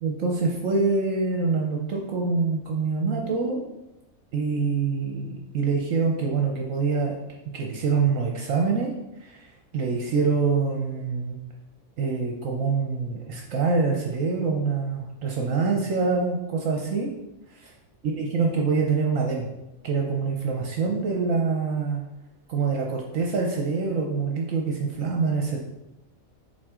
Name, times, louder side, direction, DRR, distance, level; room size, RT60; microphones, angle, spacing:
voice 1, 0.0-3.6 4.3-7.2 7.5-11.4 12.0-17.1 17.5-17.7 18.0-19.5 19.8-22.0 22.5-25.6, right 4 dB, 70° right, 0 dB, 1.1 m, -25 dB
7.7 x 4.2 x 3.6 m, 0.96 s
omnidirectional pair, 1.5 m